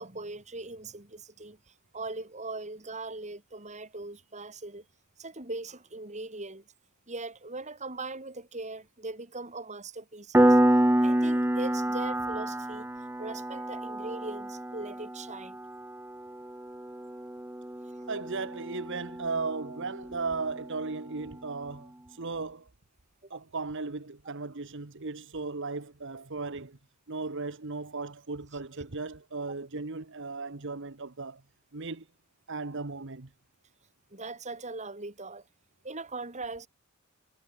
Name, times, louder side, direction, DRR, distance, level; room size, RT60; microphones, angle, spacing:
voice 1, 0.0-4.9 5.2-6.6 7.1-10.6 11.0-12.9 13.2-15.6 18.0-18.1 23.2-23.4 34.1-35.4 35.8-36.7, right 3 dB, 30° right, 3.9 m, -40 dB
Piano, 10.3-20.7, right 1 dB, 10° right, 0.9 m, -28 dB
voice 2, 18.1-22.7 23.3-26.8 27.1-31.4 31.7-32.1 32.5-33.3, right 3 dB, 60° right, 1.3 m, -36 dB
head